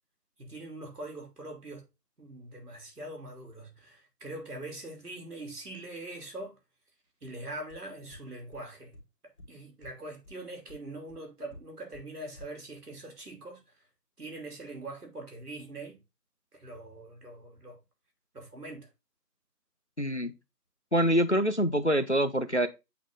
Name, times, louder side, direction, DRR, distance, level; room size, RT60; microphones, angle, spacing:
voice 1, 0.4-1.8 2.2-6.6 7.2-9.0 9.2-13.6 14.2-16.0 16.5-17.8 18.3-18.9, right 2 dB, 70° right, 2.9 m, -43 dB
sound 1, 7.7-7.8 8.1-8.2 8.5-8.6 8.9-9.0 9.4-9.5 9.8-9.9 10.2-10.3 10.7-10.8 11.1-11.2 11.5-11.6 11.9-12.0 12.4-12.5, left 2 dB, 20° left, 2.1 m, -50 dB
voice 2, 20.0-20.3 20.9-22.7, equal, 45° left, 0.5 m, -25 dB
8.3 x 3.8 x 3.6 m
figure-of-eight pair, 170°, 49 cm